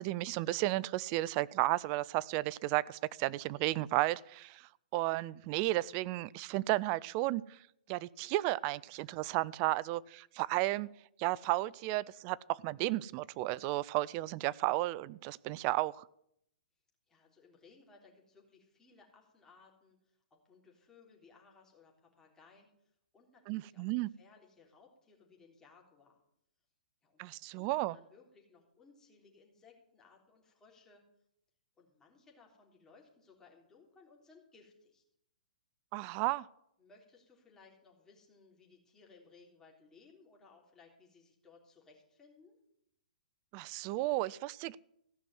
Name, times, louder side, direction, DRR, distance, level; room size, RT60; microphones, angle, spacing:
voice 1, 0.0-7.6 7.9-10.9 11.2-16.0 23.5-24.1 27.2-28.0 35.9-36.5 43.5-44.8, right 18 dB, 35° right, 0.4 m, -33 dB
voice 2, 17.1-26.2 27.0-31.1 31.8-35.0 36.8-42.6, left 4 dB, 10° left, 3.7 m, -62 dB
15.0 x 6.1 x 9.5 m
hypercardioid pair, 135°, 4 cm